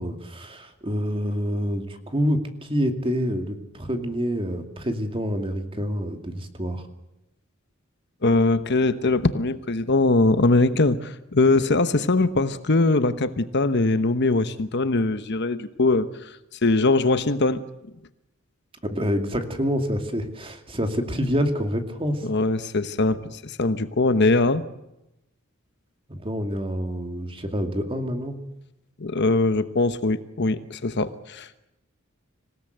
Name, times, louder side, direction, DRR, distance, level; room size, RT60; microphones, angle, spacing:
voice 1, 0.0-6.8 18.8-22.3 26.1-28.4, equal, 25° right, 6 dB, 2.4 m, -27 dB
voice 2, 8.2-16.1 16.6-17.6 22.2-24.6 29.0-31.6, left 2 dB, 55° left, 12 dB, 1.1 m, -21 dB
26.5 x 17.5 x 8.0 m, 0.91 s
head